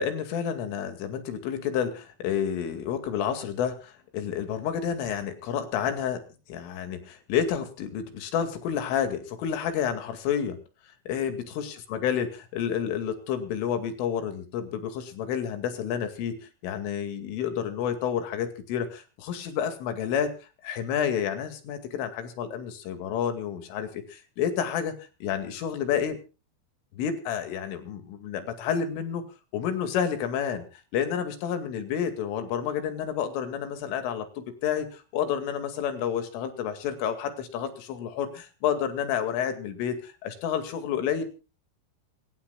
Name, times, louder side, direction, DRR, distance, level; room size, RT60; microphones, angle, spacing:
voice 1, 0.0-6.2 6.5-10.6 11.1-16.4 16.6-20.3 20.6-24.9 25.2-26.2 26.9-29.2 29.5-30.6 30.9-41.2, left 8 dB, 70° left, 8 dB, 4.7 m, -30 dB
26.0 x 15.0 x 2.3 m, 0.34 s
omnidirectional pair, 6.0 m